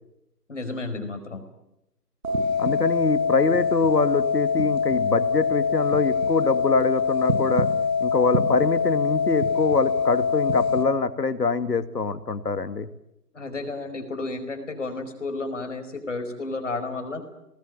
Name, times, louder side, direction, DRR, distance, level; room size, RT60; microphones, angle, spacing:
voice 1, 0.5-1.4 13.3-17.2, left 3 dB, 50° left, 7 dB, 4.9 m, -32 dB
sound 1, 2.2-10.8, left 5 dB, 55° right, 5.0 m, -24 dB
voice 2, 2.6-7.7 8.0-12.9, left 4 dB, 80° left, 11 dB, 2.3 m, -24 dB
26.0 x 19.5 x 9.4 m, 0.86 s
figure-of-eight pair, 175°, 48 cm